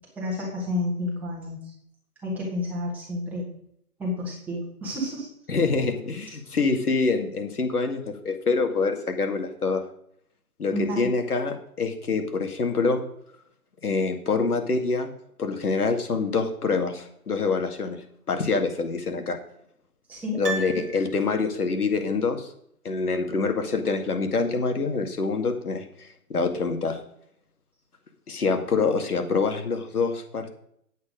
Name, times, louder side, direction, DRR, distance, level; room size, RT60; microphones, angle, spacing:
voice 1, 0.1-1.6 2.2-3.5 4.0-5.3 10.7-11.1 20.1-20.4, left 1 dB, 5° right, -4 dB, 1.4 m, -30 dB
voice 2, 5.5-9.8 10.6-13.0 13.8-15.1 15.4-18.0 18.3-19.4 20.4-22.5 22.8-27.0 28.3-30.5, left 4 dB, 75° left, 5 dB, 2.2 m, -26 dB
Piano, 20.4-21.7 22.0-22.1, right 3 dB, 35° right, 1.3 m, -35 dB
8.4 x 8.2 x 5.1 m, 0.70 s
hypercardioid pair, 160°, 45 cm